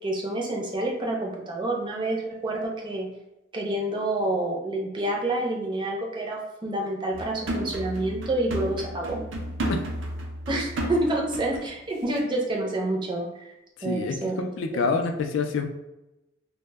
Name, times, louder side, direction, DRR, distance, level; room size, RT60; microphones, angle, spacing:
voice 1, 0.0-3.1 3.5-9.2 10.5-13.5 13.8-14.5 14.7-15.0, right 1 dB, 25° right, 0 dB, 0.5 m, -28 dB
sound 1, 7.1-11.7 12.1-12.2, right 1 dB, 80° right, 0.5 m, -32 dB
voice 2, 13.8-14.2 14.6-15.6, left 4 dB, 75° left, 6 dB, 0.3 m, -26 dB
2.0 x 2.0 x 3.3 m, 0.95 s
head